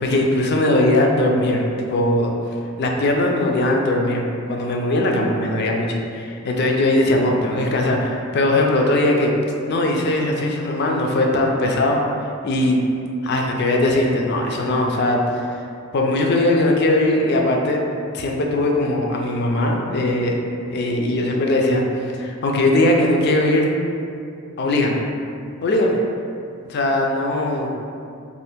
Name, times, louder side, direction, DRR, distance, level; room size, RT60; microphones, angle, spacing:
voice 1, 0.0-2.3 2.8-9.3 9.7-12.0 12.4-12.9 13.2-15.6 15.9-17.8 18.1-20.4 20.7-23.6 24.6-25.0 25.6-26.0 26.7-27.7, left 1 dB, 50° left, 1 dB, 0.4 m, -20 dB
2.7 x 2.5 x 3.4 m, 2.5 s
head